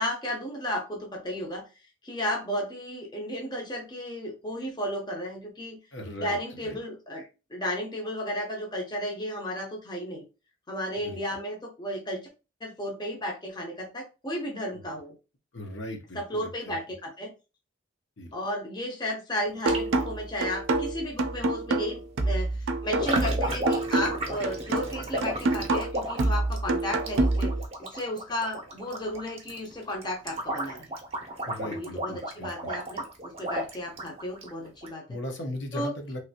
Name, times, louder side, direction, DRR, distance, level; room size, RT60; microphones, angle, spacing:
voice 1, 0.0-1.6 2.0-5.8 6.2-7.2 7.5-10.2 10.7-12.2 12.6-15.1 16.1-17.3 18.3-22.5 22.8-27.5 27.8-30.9 31.6-35.2 35.7-35.9, equal, 20° left, 0 dB, 0.7 m, -33 dB
voice 2, 5.9-6.8 11.0-11.2 14.7-14.8 15.5-16.8 18.2-18.3 22.3-22.4 31.5-32.7 35.1-36.2, left 1 dB, 65° left, 2 dB, 0.8 m, -38 dB
sound 1, 19.7-20.1 21.2-21.3 22.9-34.9, right 1 dB, 30° right, 0.6 m, -34 dB
sound 2, 19.7-27.7, right 2 dB, 75° right, 0.4 m, -27 dB
3.1 x 2.6 x 2.7 m, 0.30 s
head